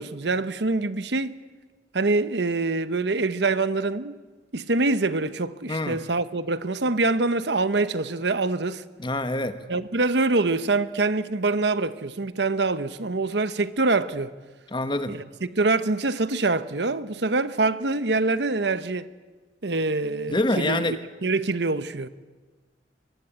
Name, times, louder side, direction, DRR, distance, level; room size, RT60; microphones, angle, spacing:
voice 1, 0.0-1.4 1.9-4.1 4.5-8.8 9.7-14.3 15.1-19.1 19.6-21.0 21.2-22.1, right 3 dB, 70° right, 1.0 m, -25 dB
voice 2, 5.7-6.0 9.0-9.6 14.7-15.2 20.3-21.0, left 2 dB, 25° left, 1.4 m, -26 dB
24.0 x 23.0 x 8.7 m
head